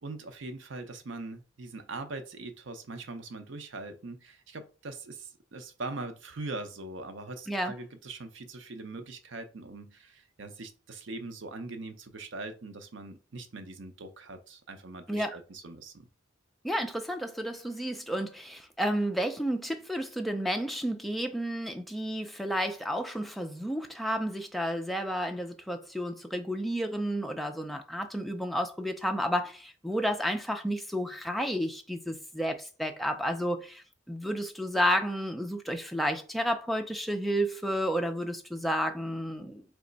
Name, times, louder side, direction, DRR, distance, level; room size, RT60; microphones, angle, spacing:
voice 1, 0.0-16.1, right 3 dB, 65° right, 0.6 m, -41 dB
voice 2, 16.6-39.6, equal, ahead, 0.4 m, -31 dB
3.4 x 3.1 x 3.9 m
head